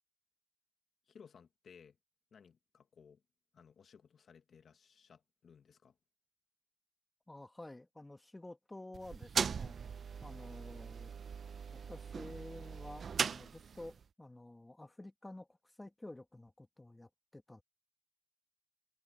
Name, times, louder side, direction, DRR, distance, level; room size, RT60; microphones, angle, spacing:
voice 1, 1.1-2.0 2.3-3.2 3.5-5.9, left 6 dB, 50° left, 1.2 m, -60 dB
voice 2, 7.3-9.8 10.2-11.1 11.7-17.6, left 1 dB, 10° left, 1.6 m, -51 dB
sound 1, 8.9-14.0, right 6 dB, 45° right, 0.6 m, -39 dB
cardioid pair, 90°, 0 cm